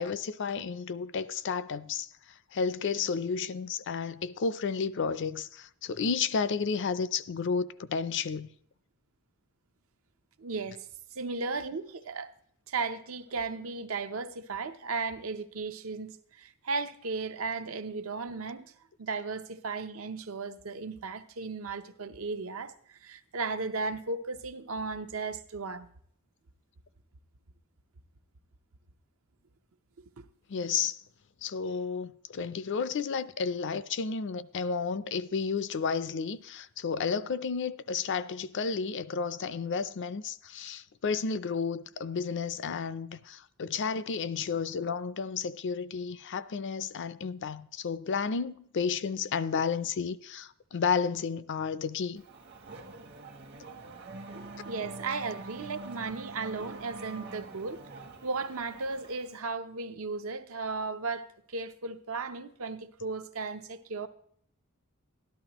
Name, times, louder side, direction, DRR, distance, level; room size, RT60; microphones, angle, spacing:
voice 1, 0.0-2.1 2.5-8.5 30.5-31.0 31.4-52.2, left 5 dB, 60° left, 0.5 m, -32 dB
voice 2, 10.4-10.8 11.1-12.3 12.7-18.7 19.0-25.9 30.0-30.1 54.6-57.8 58.2-64.1, right 4 dB, 70° right, 0.7 m, -35 dB
Race car auto racing / Accelerating revving vroom, 52.2-59.4, right 2 dB, 55° right, 1.1 m, -45 dB
12.5 x 11.5 x 3.0 m
head